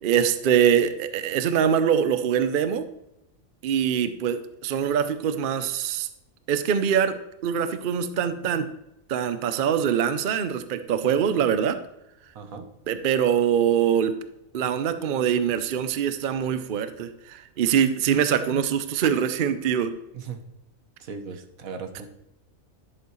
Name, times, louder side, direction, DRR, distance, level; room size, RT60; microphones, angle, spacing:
voice 1, 0.0-2.9 3.6-6.1 6.5-7.2 7.4-8.7 9.1-11.8 12.9-14.1 14.5-19.9, right 8 dB, 50° right, 10 dB, 0.6 m, -23 dB
voice 2, 12.3-12.7 20.1-20.4 21.0-22.1, right 5 dB, 85° right, 7 dB, 1.4 m, -37 dB
11.0 x 6.9 x 3.1 m, 0.87 s
omnidirectional pair, 1.4 m